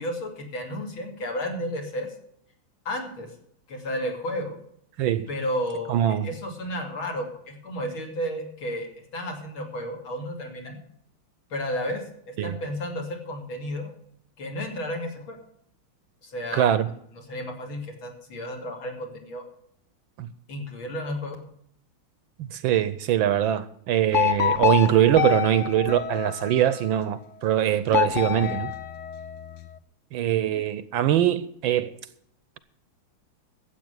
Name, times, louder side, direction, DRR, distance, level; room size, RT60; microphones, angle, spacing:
voice 1, 0.0-2.1 2.9-3.3 3.7-4.6 5.3-10.8 11.5-13.9 14.4-15.4 16.2-16.9 17.3-19.4 20.5-21.4, equal, 65° left, 3.5 m, -32 dB
voice 2, 5.9-6.3 12.4-12.5 16.5-16.9 20.2-20.3 22.5-28.7 30.1-31.9, right 11 dB, 70° right, 1.4 m, -22 dB
sound 1, 24.1-26.8 27.9-29.7, left 12 dB, 85° left, 0.6 m, -27 dB
13.0 x 8.2 x 7.9 m
omnidirectional pair, 2.4 m